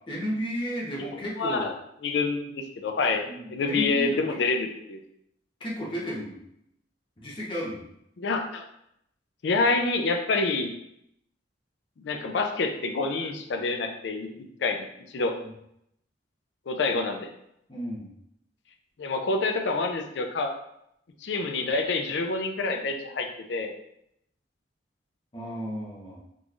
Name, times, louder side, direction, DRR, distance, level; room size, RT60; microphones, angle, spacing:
voice 1, 0.1-1.7 3.2-4.3 5.6-6.4 7.2-7.9 15.4-15.5 17.7-18.1 25.3-26.2, equal, 30° left, -5 dB, 0.9 m, -33 dB
voice 2, 1.4-1.7 2.0-3.2 3.5-5.0 8.2-8.6 9.4-10.7 12.0-14.9 15.1-15.3 16.7-17.3 19.0-20.5 21.2-23.7, left 3 dB, 70° left, 5 dB, 0.4 m, -27 dB
3.8 x 3.0 x 2.4 m, 0.77 s
head